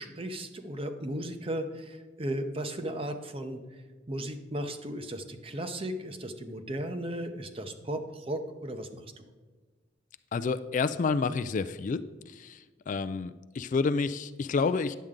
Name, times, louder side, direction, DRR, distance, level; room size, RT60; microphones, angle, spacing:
voice 1, 0.0-3.6 4.1-9.0, right 1 dB, 30° right, 7 dB, 0.7 m, -35 dB
voice 2, 10.3-12.6 12.9-15.0, left 4 dB, 45° left, 12 dB, 0.3 m, -29 dB
10.5 x 7.7 x 3.7 m, 1.4 s
head